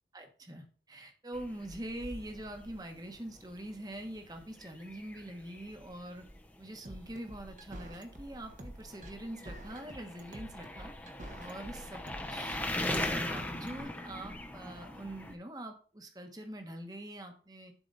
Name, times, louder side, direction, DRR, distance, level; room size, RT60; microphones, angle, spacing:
voice 1, 0.1-6.2 6.6-10.9 11.4-12.0 12.3-17.7, right 1 dB, 20° right, 5 dB, 1.3 m, -44 dB
sound 1, 1.3-15.3, left 1 dB, 10° left, 0.9 m, -41 dB
sound 2, 6.8-13.8, right 1 dB, 45° right, 1.3 m, -47 dB
11.0 x 4.8 x 4.1 m, 0.40 s
head